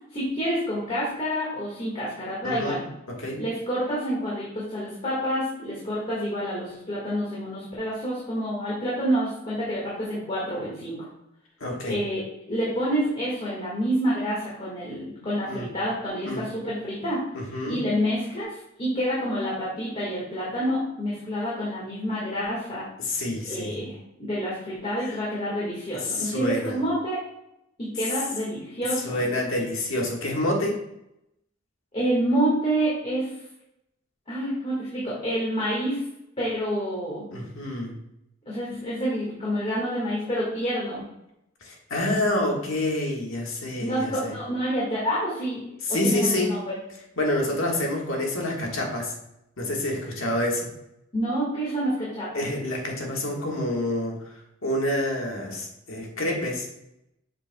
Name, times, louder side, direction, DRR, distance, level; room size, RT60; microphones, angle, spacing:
voice 1, 0.1-2.8 3.4-11.1 11.9-17.2 17.6-22.9 23.5-27.2 27.8-29.2 31.9-33.3 34.3-36.0 36.4-37.3 38.5-41.0 43.8-46.8 51.1-52.4, equal, 30° left, -7 dB, 1.7 m, -28 dB
voice 2, 2.4-2.8 3.2-3.4 11.6-12.0 15.4-15.7 16.2-16.4 17.3-17.8 23.0-23.8 25.0-25.2 26.0-26.8 29.0-30.8 37.3-37.9 41.6-44.3 45.8-46.6 47.2-49.1 49.6-50.7 52.3-56.7, left 1 dB, 85° left, 0 dB, 1.5 m, -27 dB
7.9 x 5.3 x 2.2 m, 0.83 s
head